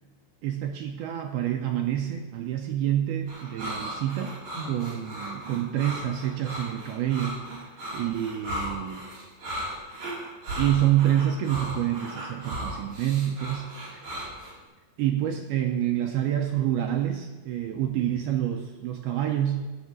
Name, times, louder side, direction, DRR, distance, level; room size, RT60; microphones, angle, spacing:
voice 1, 0.4-4.4 4.7-7.4 7.9-9.1 10.6-14.1 15.0-19.6, right 11 dB, 80° right, 3 dB, 2.3 m, -27 dB
sound 1, 3.3-14.5, right 1 dB, 40° right, 4.8 m, -36 dB
13.5 x 6.2 x 8.2 m, 1.2 s
omnidirectional pair, 5.2 m